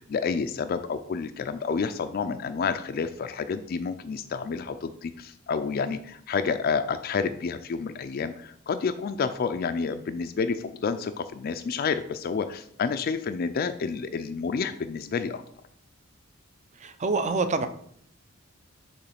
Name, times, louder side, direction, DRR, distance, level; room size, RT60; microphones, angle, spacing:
voice 1, 0.0-15.4, left 5 dB, 50° left, 9 dB, 0.3 m, -29 dB
voice 2, 16.7-17.7, right 3 dB, 35° right, 9 dB, 0.5 m, -26 dB
6.8 x 3.1 x 5.7 m, 0.66 s
head